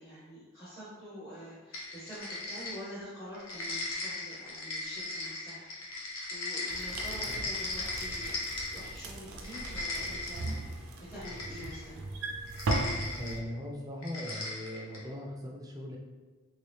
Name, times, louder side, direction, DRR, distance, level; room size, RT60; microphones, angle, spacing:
voice 1, 0.0-5.7 6.3-8.3 8.7-10.7 11.1-12.0, equal, 20° left, -10 dB, 0.7 m, -46 dB
sound 1, 1.7-3.0 3.3-9.0 9.3-10.6 11.2-11.9 12.5-13.4 14.0-15.1, left 2 dB, 75° left, 0.9 m, -37 dB
sound 2, 6.7-13.4, right 2 dB, 85° right, 0.5 m, -38 dB
voice 2, 13.2-16.0, equal, 15° right, 0 dB, 0.4 m, -39 dB
3.2 x 2.8 x 3.3 m, 1.3 s
head